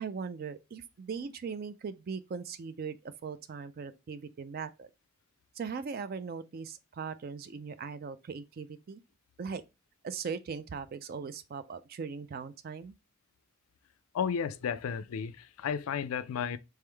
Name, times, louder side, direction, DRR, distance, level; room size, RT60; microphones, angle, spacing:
voice 1, 0.0-4.9 5.6-9.0 9.4-9.6 10.0-12.9, right 5 dB, 45° right, 0.4 m, -39 dB
voice 2, 14.1-16.6, left 7 dB, 80° left, 0.4 m, -33 dB
3.5 x 3.2 x 3.3 m
head